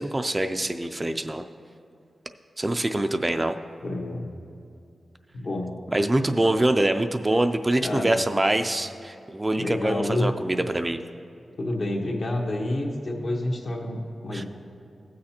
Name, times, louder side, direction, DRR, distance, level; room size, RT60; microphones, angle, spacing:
voice 1, 0.0-1.4 2.6-3.6 5.9-11.0 14.3-14.4, right 1 dB, 20° right, 7 dB, 0.3 m, -24 dB
voice 2, 3.8-4.3 5.3-5.7 6.3-6.4 7.8-8.2 9.6-10.3 11.6-14.5, left 1 dB, 60° left, -1 dB, 1.3 m, -28 dB
17.0 x 6.4 x 2.9 m, 2.5 s
wide cardioid pair, 85°, 0 cm